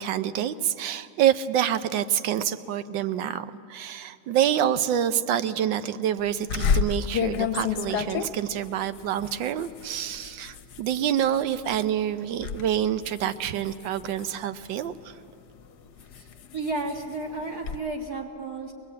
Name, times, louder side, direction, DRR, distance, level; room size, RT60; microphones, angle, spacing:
voice 1, 0.0-15.1, right 10 dB, 80° right, 12 dB, 1.4 m, -27 dB
sound 1, 6.5-11.9 12.2-12.7 13.0-15.0 15.6-17.8, left 7 dB, 65° left, 1.3 m, -30 dB
voice 2, 16.5-18.7, right 2 dB, 55° right, 1 dB, 2.3 m, -32 dB
23.0 x 20.5 x 8.6 m, 2.5 s
omnidirectional pair, 2.0 m